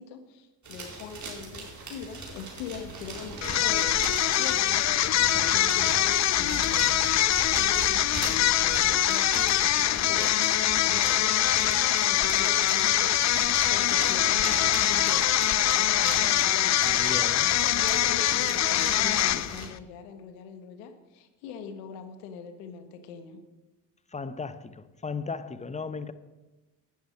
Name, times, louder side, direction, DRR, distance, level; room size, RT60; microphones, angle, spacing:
voice 1, 0.0-7.0 7.2-15.4 15.7-17.0 17.7-23.4, left 6 dB, 90° left, 1.4 m, -42 dB
sound 1, 0.6-19.7, right 3 dB, 35° right, 4.1 m, -39 dB
sound 2, 3.4-19.7, left 13 dB, 40° left, 0.4 m, -24 dB
voice 2, 16.8-17.6 24.1-26.1, left 4 dB, 15° left, 0.8 m, -36 dB
11.5 x 9.5 x 5.2 m
supercardioid pair, 75°, 48 cm